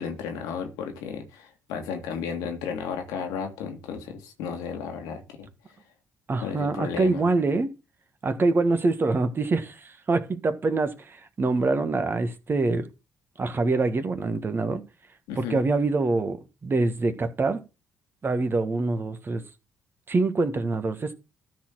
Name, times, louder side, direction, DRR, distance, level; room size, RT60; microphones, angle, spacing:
voice 1, 0.0-5.5 6.4-7.2 15.3-15.6, left 6 dB, 75° left, 1.9 m, -34 dB
voice 2, 6.3-7.7 8.2-12.9 13.4-14.8 15.4-17.6 18.2-19.4 20.1-21.1, right 3 dB, 35° right, 1.5 m, -25 dB
13.0 x 4.4 x 6.0 m
hypercardioid pair, 50°, 6 cm